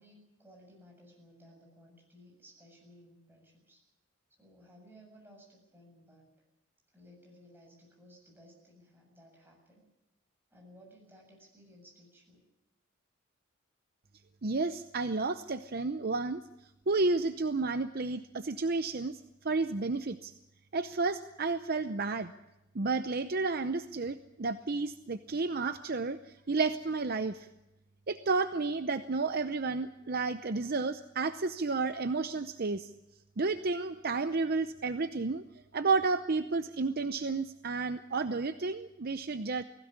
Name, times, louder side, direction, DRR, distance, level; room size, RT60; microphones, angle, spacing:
voice 1, 0.0-3.8 4.4-6.3 6.9-9.8 10.5-12.4, equal, 10° right, -1 dB, 7.6 m, -58 dB
voice 2, 14.4-16.4 16.9-19.2 19.4-20.3 20.7-22.3 22.7-26.2 26.5-27.5 28.1-32.9 33.4-35.4 35.7-39.6, right 3 dB, 45° right, 10 dB, 0.7 m, -31 dB
19.5 x 16.5 x 9.6 m, 0.92 s
head